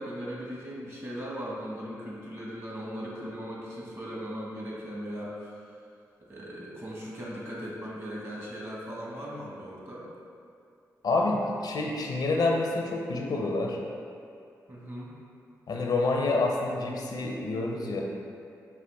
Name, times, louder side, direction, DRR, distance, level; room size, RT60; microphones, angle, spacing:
voice 1, 0.0-5.6 6.3-10.1 14.7-15.1, equal, 40° right, -4 dB, 1.2 m, -38 dB
voice 2, 11.0-13.8 15.7-18.0, left 2 dB, 65° left, 0 dB, 0.6 m, -28 dB
5.4 x 2.4 x 3.4 m, 2.4 s
supercardioid pair, 45°, 7 cm